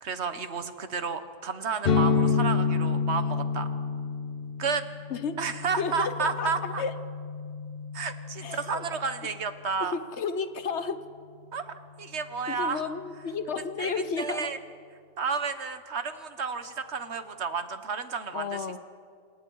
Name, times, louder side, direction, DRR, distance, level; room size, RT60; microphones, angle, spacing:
voice 1, 0.0-3.7 4.6-4.8 5.4-6.8 7.9-10.0 11.5-12.8 13.8-13.9 14.2-14.6 15.2-18.6, right 5 dB, 80° right, 10 dB, 1.5 m, -31 dB
sound 1, 1.8-9.5, left 5 dB, 60° left, 1.1 m, -29 dB
voice 2, 5.8-6.9 8.4-8.8 9.8-11.0 12.5-14.5 18.3-18.8, left 5 dB, 85° left, 11 dB, 1.4 m, -32 dB
27.5 x 26.5 x 4.8 m, 2.2 s
omnidirectional pair, 1.1 m